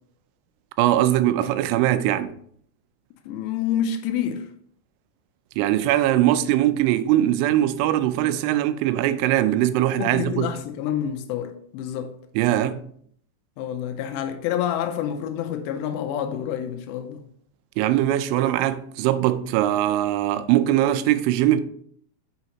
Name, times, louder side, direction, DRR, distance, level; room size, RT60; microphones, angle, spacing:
voice 1, 0.8-2.3 5.6-10.5 12.4-12.8 17.8-21.6, right 13 dB, 85° right, 2.9 m, -21 dB
voice 2, 3.3-4.5 10.0-12.1 13.6-17.2, left 9 dB, 80° left, 2.6 m, -28 dB
7.7 x 5.7 x 2.9 m
omnidirectional pair, 5.4 m